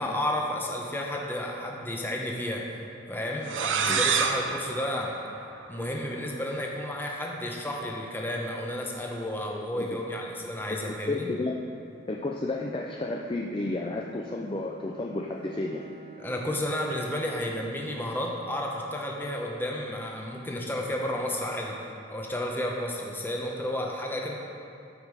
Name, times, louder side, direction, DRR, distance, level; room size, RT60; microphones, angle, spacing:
voice 1, 0.0-2.7 3.1-5.1 5.7-11.3 16.2-21.8 22.1-24.4, left 1 dB, 10° left, -1 dB, 0.9 m, -32 dB
sound 1, 3.4-6.0, right 5 dB, 75° right, 0.6 m, -28 dB
voice 2, 11.1-11.6 12.1-15.9, left 2 dB, 25° left, -1 dB, 0.4 m, -31 dB
Bowed string instrument, 12.4-17.1, right 4 dB, 45° right, 0.8 m, -50 dB
12.0 x 5.4 x 4.8 m, 2.6 s
head